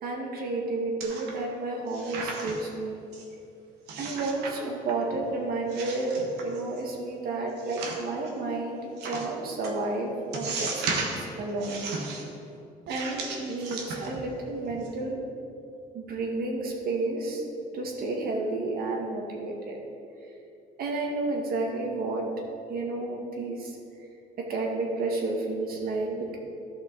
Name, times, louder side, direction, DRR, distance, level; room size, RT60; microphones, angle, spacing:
voice 1, 0.0-3.0 4.0-6.1 6.4-11.9 12.9-15.2 15.9-17.4 17.7-19.8 20.8-22.2 22.7-23.8 24.5-26.4, right 2 dB, 60° right, 0 dB, 1.8 m, -31 dB
sound 1, 1.0-1.6 1.9-2.7 3.1-3.2 3.9-4.5 4.9-5.3 5.7-6.8 7.6-8.3 9.0-9.2 9.6-9.7 10.3-11.2 11.6-12.2 12.9-14.4 14.7-14.9, right 4 dB, 85° right, 1.4 m, -35 dB
13.5 x 5.7 x 3.9 m, 2.7 s
cardioid pair, 110°, 17 cm